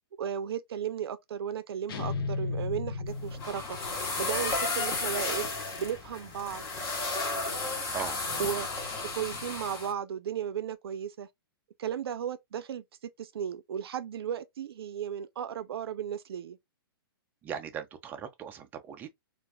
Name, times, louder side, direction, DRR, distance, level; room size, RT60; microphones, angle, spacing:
voice 1, 0.2-6.7 8.4-8.7 9.2-11.3 11.8-16.6, right 9 dB, 75° right, 0.5 m, -35 dB
sound 1, 1.9-3.9, left 4 dB, 65° left, 0.6 m, -34 dB
sound 2, 3.1-9.9, left 3 dB, 25° left, 1.0 m, -33 dB
voice 2, 17.4-19.1, right 8 dB, 15° right, 0.4 m, -38 dB
2.5 x 2.2 x 3.2 m
hypercardioid pair, 155°, 13 cm